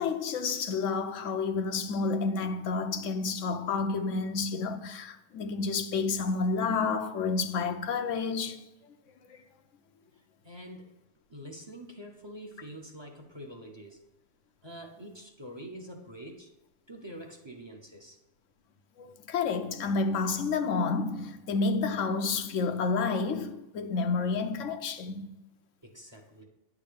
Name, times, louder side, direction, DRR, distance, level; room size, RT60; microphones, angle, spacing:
voice 1, 0.0-8.6 9.3-9.4 19.0-25.3, left 4 dB, 85° left, 1.1 m, -30 dB
voice 2, 10.4-10.9 11.3-14.0 14.6-16.5 16.9-18.2 25.8-26.4, right 1 dB, 25° right, 1.0 m, -45 dB
9.8 x 3.7 x 6.9 m
omnidirectional pair, 1.3 m